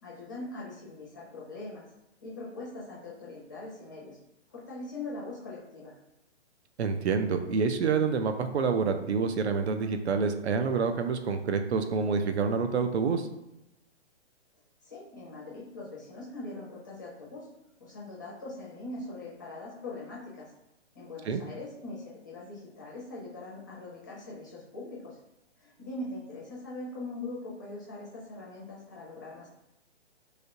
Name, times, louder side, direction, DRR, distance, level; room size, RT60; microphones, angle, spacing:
voice 1, 0.0-1.9 2.2-4.2 4.5-5.9 14.8-17.5 17.8-20.5 20.9-25.2 25.6-29.5, left 2 dB, 15° left, -6 dB, 0.5 m, -41 dB
voice 2, 6.8-13.3 21.2-21.4, right 5 dB, 65° right, 7 dB, 0.5 m, -27 dB
3.3 x 2.7 x 2.7 m, 0.91 s
hypercardioid pair, 160°, 35 cm